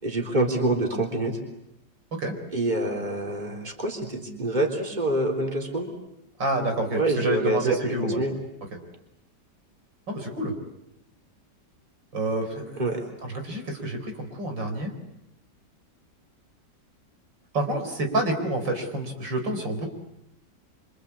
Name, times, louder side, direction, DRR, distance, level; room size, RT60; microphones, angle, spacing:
voice 1, 0.0-1.4 2.5-5.9 6.9-8.3 12.8-13.0, right 2 dB, 25° right, 2 dB, 3.9 m, -26 dB
voice 2, 6.4-8.2 10.1-10.5 12.1-12.8 13.2-14.9 17.5-19.9, right 1 dB, 85° right, 4 dB, 5.1 m, -28 dB
26.5 x 26.5 x 8.5 m, 0.84 s
omnidirectional pair, 2.0 m